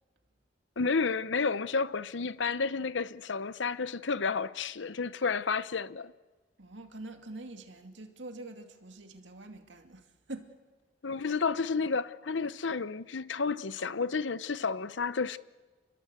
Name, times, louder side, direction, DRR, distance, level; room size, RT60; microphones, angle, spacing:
voice 1, 0.8-6.1 11.0-15.4, left 4 dB, 75° left, 0.8 m, -31 dB
voice 2, 6.6-10.5, right 2 dB, 75° right, 2.4 m, -45 dB
28.5 x 21.0 x 8.2 m
head